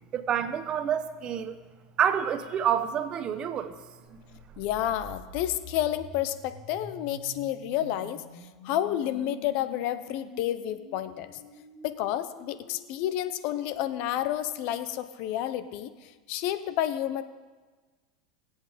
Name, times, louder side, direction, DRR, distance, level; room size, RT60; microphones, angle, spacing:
voice 1, 0.1-1.6 2.0-3.8 4.1-4.2, right 9 dB, 35° right, 11 dB, 0.9 m, -28 dB
sound 1, 4.2-14.1, left 1 dB, 35° left, 5.1 m, -48 dB
voice 2, 4.6-8.2 8.6-11.3 11.8-17.2, left 12 dB, 60° left, 12 dB, 0.8 m, -30 dB
21.0 x 8.1 x 5.1 m, 1.4 s
supercardioid pair, 125°, 3 cm